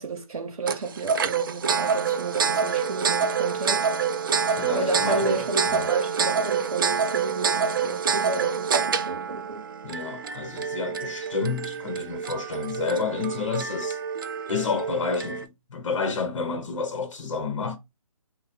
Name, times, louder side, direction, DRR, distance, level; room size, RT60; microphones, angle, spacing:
voice 1, 0.0-3.9 4.7-9.7, right 3 dB, 80° right, 0.8 m, -32 dB
sound 1, 0.7-15.5, right 6 dB, 35° right, 0.4 m, -27 dB
voice 2, 4.3-5.9 9.8-14.0 14.5-17.8, left 4 dB, 55° left, 0.9 m, -30 dB
3.3 x 2.2 x 4.1 m
figure-of-eight pair, 150°, 18 cm